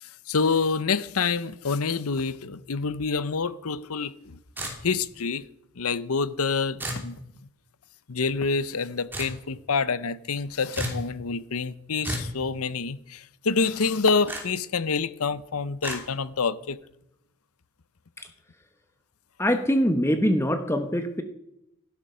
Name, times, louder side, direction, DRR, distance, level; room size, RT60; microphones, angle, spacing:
voice 1, 0.0-4.4 4.8-5.4 5.8-7.2 8.1-16.8, left 4 dB, 80° left, 0.8 m, -27 dB
sound 1, 4.6-5.1 6.8-7.1 9.1-9.4 10.8-11.0 12.0-12.4 14.3-14.4 15.8-16.0, right 1 dB, 10° right, 3.0 m, -32 dB
voice 2, 19.4-21.2, equal, 10° left, 1.0 m, -23 dB
16.5 x 12.0 x 5.7 m
head